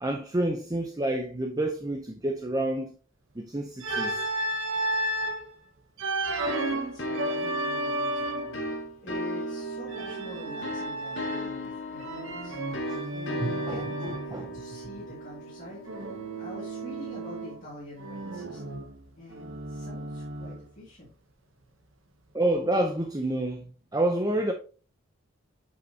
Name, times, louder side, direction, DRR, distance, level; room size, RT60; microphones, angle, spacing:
voice 1, 0.0-2.9 3.4-4.3 13.4-14.4 22.3-23.6 23.9-24.5, right 1 dB, 20° right, 0.6 m, -28 dB
Organ, 3.8-5.4 6.0-8.6 9.9-11.6 12.0-14.3 15.9-17.7 18.0-20.7, right 1 dB, 75° right, 0.9 m, -33 dB
sound 1, 6.5-16.9, equal, 65° left, 1.5 m, -36 dB
voice 2, 6.7-12.6 13.1-15.8 16.4-18.9 19.2-21.1, left 1 dB, 40° left, 2.2 m, -45 dB
7.6 x 5.6 x 2.8 m
head